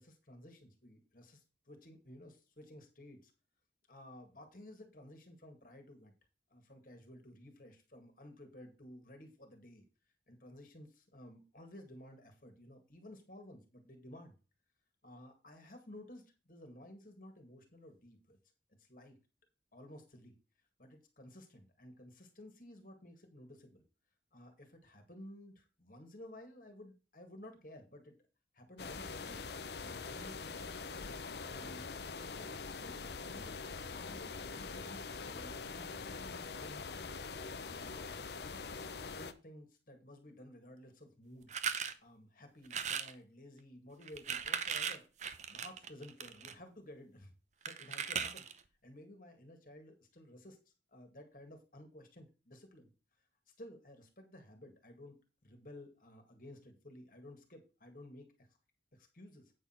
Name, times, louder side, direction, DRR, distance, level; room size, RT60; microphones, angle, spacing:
voice 1, 0.0-3.3 3.9-6.1 6.5-9.8 10.3-14.4 15.0-18.4 18.7-19.2 19.7-20.3 20.8-23.8 24.3-28.1 28.5-29.5 29.8-30.7 31.4-31.8 32.2-33.5 33.9-37.1 37.6-41.5 42.0-45.1 45.5-47.3 47.7-48.4 48.8-52.9 53.2-55.2 55.4-58.5 58.9-59.5, left 1 dB, 50° left, 5 dB, 2.0 m, -54 dB
sound 1, 28.8-39.3, left 4 dB, 65° left, 0.8 m, -44 dB
sound 2, 41.5-41.9 42.7-43.1 44.0-46.5 47.7-48.6, right 7 dB, 40° right, 0.8 m, -38 dB
8.9 x 6.1 x 4.5 m, 0.32 s
head